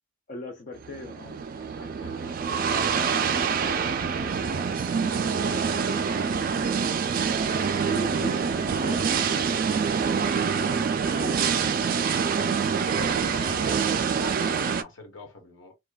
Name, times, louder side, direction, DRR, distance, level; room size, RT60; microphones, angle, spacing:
voice 1, 0.3-1.4 3.0-3.3 7.8-9.3, left 1 dB, 40° left, 0.4 m, -39 dB
sound 1, 0.8-14.8, right 6 dB, 45° right, 0.3 m, -26 dB
voice 2, 1.6-6.7 8.5-9.6 10.2-12.2 12.8-15.8, left 2 dB, 80° left, 1.1 m, -43 dB
3.1 x 2.2 x 2.2 m
head